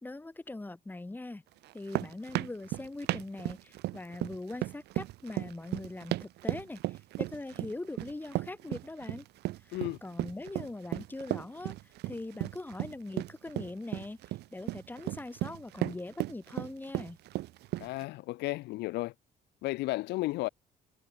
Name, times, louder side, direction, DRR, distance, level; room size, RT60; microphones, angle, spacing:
voice 1, 0.0-1.4 1.7-6.8 7.2-9.2 10.0-11.8 12.1-14.2 14.5-17.2, left 2 dB, 10° left, 2.2 m, -41 dB
sound 1, 1.6-18.0, right 17 dB, 80° right, 2.4 m, -35 dB
voice 2, 17.8-19.1 19.6-20.5, left 19 dB, 90° left, 2.4 m, -33 dB
cardioid pair, 110°, 17 cm